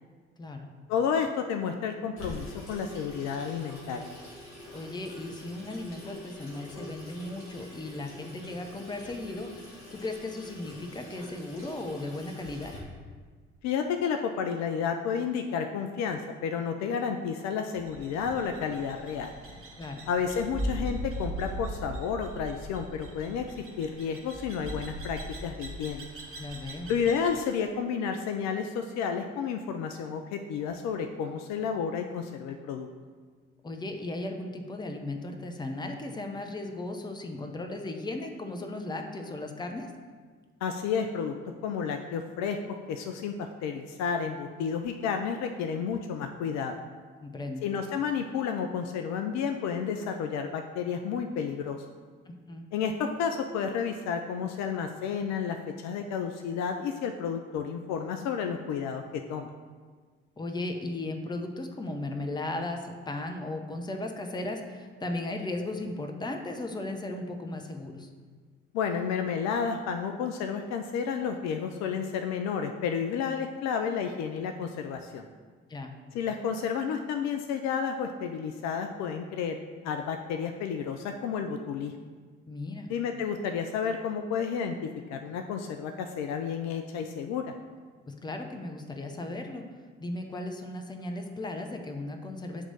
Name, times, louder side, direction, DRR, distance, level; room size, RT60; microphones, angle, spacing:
voice 1, 0.4-0.7 4.7-9.5 9.9-12.7 19.8-20.0 26.4-26.9 33.6-39.9 47.2-47.6 52.3-52.7 60.4-68.1 75.7-75.9 82.5-82.9 88.1-89.6 90.0-92.7, left 2 dB, 10° left, 4 dB, 0.6 m, -36 dB
voice 2, 0.9-4.1 13.6-19.3 20.1-23.4 23.8-26.1 26.9-32.9 40.6-41.4 41.6-46.8 47.6-51.8 52.7-59.0 59.3-59.5 68.7-75.2 76.1-79.6 79.8-81.9 82.9-87.5, left 6 dB, 50° left, 5 dB, 0.4 m, -31 dB
Water tap faucet / Sink (filling or washing), 2.2-12.8, left 1 dB, 70° left, 1.3 m, -45 dB
sound 1, 17.9-27.4, right 1 dB, 40° right, 1.3 m, -39 dB
7.9 x 3.0 x 3.9 m, 1.5 s
figure-of-eight pair, 45°, 34 cm